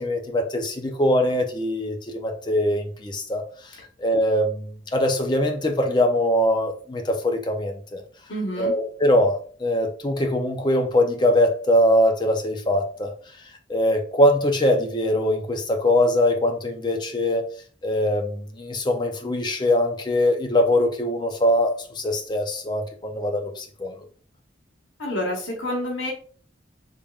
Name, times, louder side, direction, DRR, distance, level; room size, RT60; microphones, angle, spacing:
voice 1, 0.0-3.7 4.0-8.0 8.6-13.1 13.7-17.5 17.8-24.0, left 1 dB, 25° left, 4 dB, 0.5 m, -22 dB
voice 2, 8.3-8.7 25.0-26.1, left 1 dB, 90° left, -2 dB, 1.1 m, -28 dB
3.6 x 3.4 x 2.3 m, 0.44 s
head